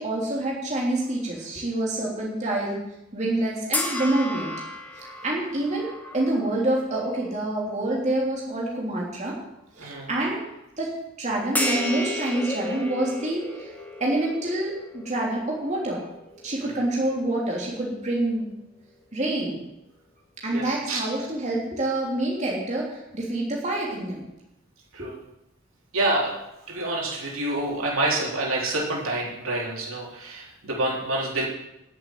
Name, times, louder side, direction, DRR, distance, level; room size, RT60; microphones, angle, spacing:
voice 1, 0.0-2.8 3.1-4.5 4.9-5.9 6.1-9.3 9.7-10.4 10.8-10.9 11.2-13.7 14.0-16.0 16.4-18.5 19.1-19.6 20.4-24.2, right 1 dB, 35° right, -3 dB, 3.2 m, -27 dB
sound 1, 3.7-7.3 7.8-8.0 11.6-17.9, left 1 dB, 10° left, 1.8 m, -33 dB
voice 2, 9.8-10.1 20.5-21.0 24.9-25.1 25.9-26.3 26.7-31.5, right 2 dB, 80° right, -3 dB, 4.0 m, -27 dB
10.5 x 8.0 x 9.3 m, 0.87 s
head